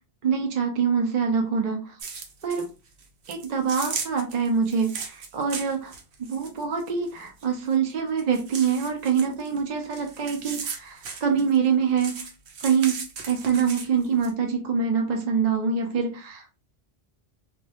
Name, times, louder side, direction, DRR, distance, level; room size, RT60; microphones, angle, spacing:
voice 1, 0.2-2.0 2.4-2.7 3.3-5.9 6.2-12.1 12.6-13.0 13.3-16.5, right 6 dB, 55° right, 2 dB, 0.5 m, -25 dB
sound 1, 2.0-2.7 3.0-7.9 8.2-11.7 12.0-14.3, right 5 dB, 90° right, 0.9 m, -37 dB
2.2 x 2.1 x 2.7 m, 0.31 s
omnidirectional pair, 1.1 m